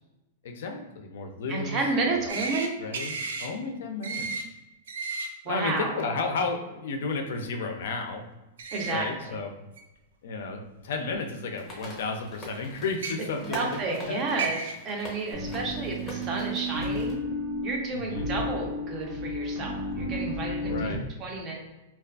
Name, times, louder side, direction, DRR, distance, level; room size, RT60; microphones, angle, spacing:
voice 1, 0.4-1.8 2.0-2.2 2.8-4.4 5.5-8.2 8.8-9.5 10.2-14.2 17.9-18.3 20.6-21.1, left 4 dB, 70° left, 4 dB, 0.4 m, -33 dB
voice 2, 1.5-2.7 5.4-6.0 8.7-9.4 13.4-17.2 17.6-20.9 21.2-21.6, right 3 dB, 25° right, 0 dB, 0.5 m, -31 dB
sound 1, 2.3-2.7 2.9-3.5 4.0-4.4 4.9-5.3 8.6-8.9 9.8-9.9 11.1-11.2 12.9-13.1 14.0-14.1 14.4-14.7, right 4 dB, 85° right, 0.3 m, -32 dB
sound 2, 11.6-17.1, left 1 dB, 15° left, 0.7 m, -44 dB
sound 3, 15.3-21.0, left 1 dB, 65° right, 1.0 m, -32 dB
2.4 x 2.2 x 2.3 m, 1.0 s
supercardioid pair, 150°, 0 cm